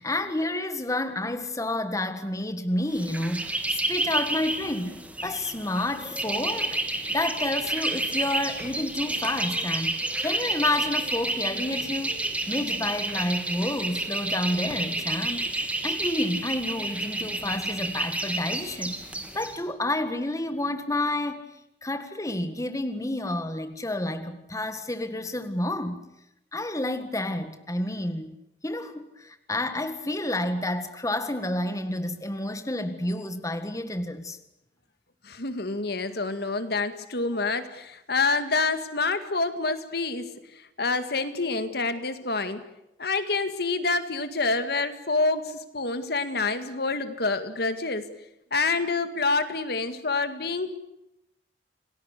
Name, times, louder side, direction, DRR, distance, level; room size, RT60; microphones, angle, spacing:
voice 1, 0.0-12.2 12.5-19.1 19.3-21.4 21.8-26.0 26.5-28.3 28.6-34.4, left 1 dB, 20° left, 1.7 m, -30 dB
sound 1, 2.9-19.6, right 2 dB, 10° right, 2.8 m, -30 dB
voice 2, 35.2-42.6 43.0-48.1 48.5-50.7, left 3 dB, 65° left, 2.0 m, -27 dB
28.5 x 19.5 x 8.3 m
head